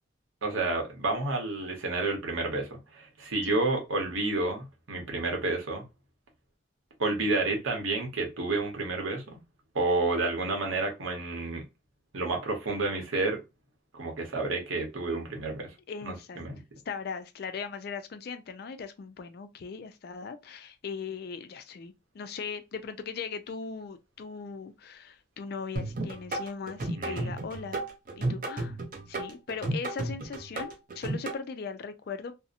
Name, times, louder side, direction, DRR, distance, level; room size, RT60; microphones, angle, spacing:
voice 1, 0.4-5.8 7.0-9.4 9.7-11.6 12.1-13.4 13.9-15.7 16.0-16.6 26.9-27.3, right 3 dB, 85° right, 0.9 m, -30 dB
voice 2, 15.9-16.5 16.9-27.8 28.2-28.8 29.1-32.3, left 5 dB, 50° left, 0.3 m, -39 dB
sound 1, 25.8-31.4, right 2 dB, 45° right, 0.6 m, -33 dB
2.7 x 2.0 x 2.4 m
head